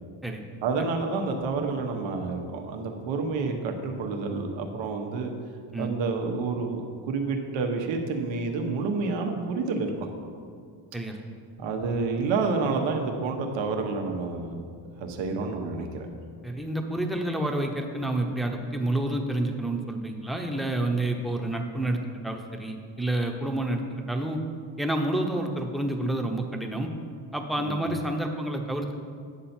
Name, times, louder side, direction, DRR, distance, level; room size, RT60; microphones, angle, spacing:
voice 1, 0.6-5.3 5.8-10.1 11.6-14.6 15.0-16.1 27.6-27.8, right 4 dB, 75° right, 3 dB, 1.2 m, -29 dB
voice 2, 16.4-24.4 24.8-26.9 27.3-29.0, right 1 dB, ahead, 1 dB, 0.8 m, -29 dB
9.5 x 6.6 x 4.4 m, 2.2 s
cardioid pair, 110°, 45 cm